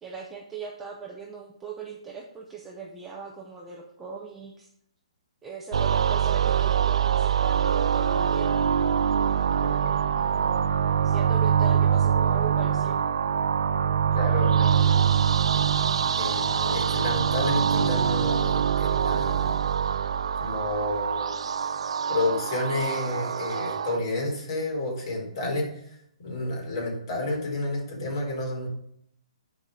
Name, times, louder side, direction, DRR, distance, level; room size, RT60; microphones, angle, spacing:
voice 1, 0.0-4.7 5.4-8.8 10.1-10.7 11.0-13.0, right 5 dB, 5° right, -1 dB, 0.5 m, -39 dB
sound 1, 5.7-24.0, right 8 dB, 60° right, 0.4 m, -24 dB
voice 2, 9.6-9.9 14.1-15.1 16.2-19.6 20.4-21.3 22.1-25.8 26.2-28.7, left 2 dB, 40° left, -2 dB, 3.9 m, -30 dB
9.0 x 4.8 x 5.4 m, 0.71 s
hypercardioid pair, 175°, 4 cm